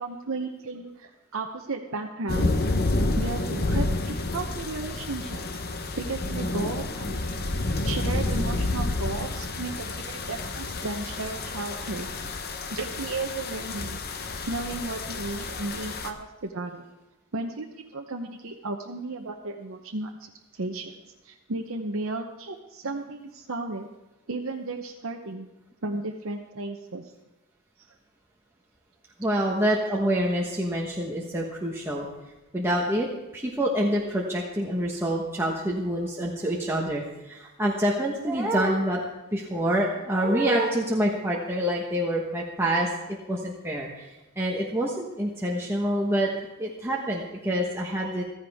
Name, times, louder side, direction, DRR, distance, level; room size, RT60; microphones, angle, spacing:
voice 1, 0.0-2.5 3.2-5.6 6.0-12.1 12.3-12.4 12.7-14.0 14.5-16.8 17.3-20.1 20.5-20.9 21.2-23.9 24.3-25.5 25.8-27.1, right 3 dB, 65° right, 1 dB, 0.8 m, -34 dB
sound 1, 2.3-16.1, left 2 dB, 45° left, 0.9 m, -29 dB
voice 2, 29.2-32.1 32.5-33.1 33.3-39.0 39.3-46.3 46.6-48.2, right 1 dB, 10° right, -3 dB, 1.2 m, -26 dB
15.0 x 14.0 x 3.6 m, 1.0 s
head